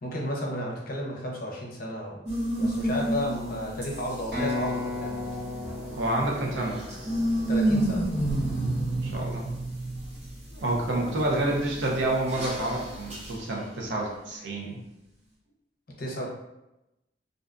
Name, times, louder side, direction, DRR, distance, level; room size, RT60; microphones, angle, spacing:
voice 1, 0.0-2.2 2.6-5.2 7.5-8.1 11.0-11.1 16.0-16.3, equal, 50° left, -2 dB, 0.6 m, -32 dB
sound 1, 2.3-14.0, right 1 dB, 35° right, 0.6 m, -31 dB
sound 2, 4.3-8.1, left 2 dB, 60° right, 1.3 m, -35 dB
Race car auto racing / Accelerating revving vroom, 4.9-9.6, left 1 dB, 5° right, 0.9 m, -44 dB
voice 2, 5.9-6.9 9.0-9.5 10.5-14.8, right 1 dB, 75° right, -2 dB, 0.6 m, -28 dB
2.5 x 2.2 x 2.4 m, 0.92 s
head